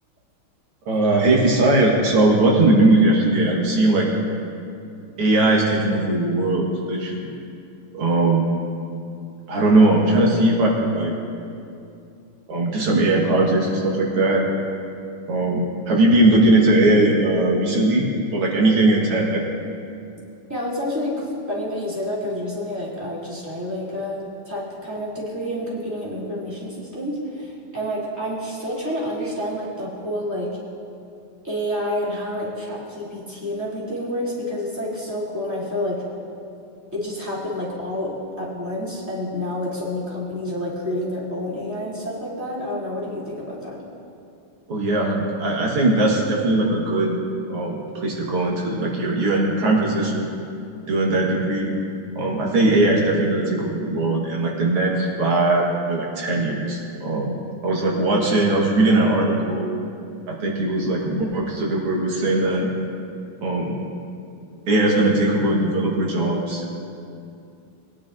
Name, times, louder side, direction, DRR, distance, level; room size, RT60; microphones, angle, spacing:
voice 1, 0.9-4.1 5.2-7.3 7.9-8.4 9.5-11.1 12.5-14.4 15.3-19.4 44.7-47.2 47.5-50.3 50.8-51.7 52.2-57.3 57.6-59.7 60.3-62.7 63.4-63.8 64.7-66.7, right 2 dB, 80° right, -2 dB, 2.4 m, -19 dB
voice 2, 20.5-30.5 31.4-36.0 36.9-43.8, left 1 dB, 5° right, -8 dB, 2.7 m, -29 dB
20.0 x 10.0 x 2.6 m, 2.6 s
omnidirectional pair, 2.4 m